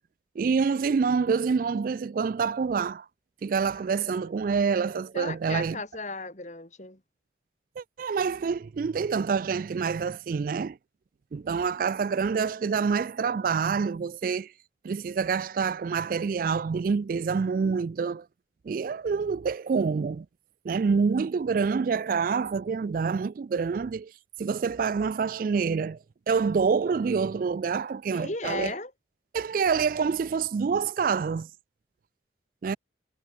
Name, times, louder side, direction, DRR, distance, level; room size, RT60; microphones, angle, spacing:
voice 1, 0.4-3.1 3.4-5.8 7.8-10.8 11.3-14.5 14.8-18.3 18.7-20.3 20.6-24.1 24.4-26.0 26.3-28.7 29.3-31.5 32.6-32.8, right 5 dB, 50° right, 0.3 m, -27 dB
voice 2, 3.9-4.3 5.1-7.0 28.1-28.9, left 3 dB, 40° left, 3.7 m, -36 dB
head